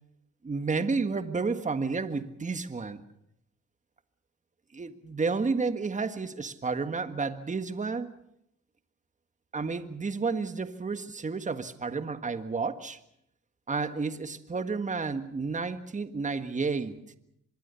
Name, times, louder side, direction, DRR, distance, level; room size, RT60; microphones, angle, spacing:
voice 1, 0.4-3.0 4.7-8.1 9.5-13.0 13.7-17.0, right 4 dB, 25° right, 10 dB, 1.7 m, -31 dB
25.0 x 21.5 x 7.0 m, 0.77 s
cardioid pair, 90°, 30 cm